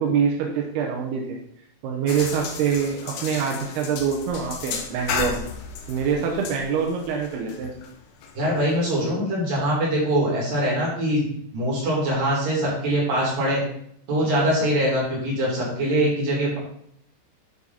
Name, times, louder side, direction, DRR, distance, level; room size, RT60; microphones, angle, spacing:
voice 1, 0.0-1.4 1.8-5.5 5.9-7.7, right 6 dB, 80° right, 0 dB, 2.3 m, -25 dB
sound 1, 2.1-9.0, left 6 dB, 85° left, 2.1 m, -34 dB
voice 2, 8.3-13.6 14.1-16.6, equal, 45° right, -5 dB, 4.1 m, -23 dB
12.0 x 4.4 x 4.1 m, 0.68 s
omnidirectional pair, 5.8 m